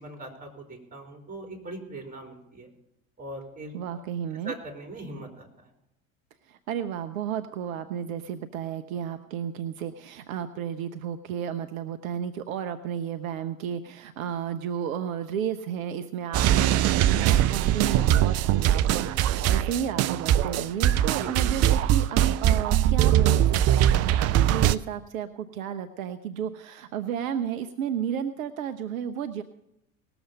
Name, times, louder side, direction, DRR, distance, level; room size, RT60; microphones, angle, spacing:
voice 1, 0.0-2.7 3.2-3.7 4.4-5.5 21.2-21.3, right 2 dB, 20° right, 1 dB, 3.8 m, -40 dB
voice 2, 3.7-4.5 6.5-29.4, right 8 dB, 70° right, 10 dB, 0.7 m, -33 dB
sound 1, 16.3-24.8, right 11 dB, 40° right, 0.5 m, -22 dB
19.0 x 7.0 x 5.2 m, 0.84 s
hypercardioid pair, 70°, 42 cm